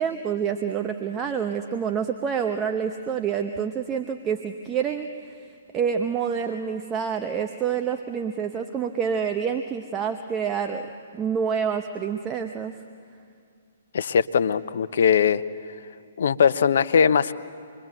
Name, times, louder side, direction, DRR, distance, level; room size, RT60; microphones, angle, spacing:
voice 1, 0.0-5.1 5.7-12.8, right 7 dB, 20° right, 6 dB, 1.0 m, -27 dB
voice 2, 13.9-15.4 16.2-17.3, left 7 dB, 65° left, 15 dB, 0.8 m, -20 dB
27.0 x 22.0 x 7.8 m, 2.3 s
figure-of-eight pair, 130°, 0 cm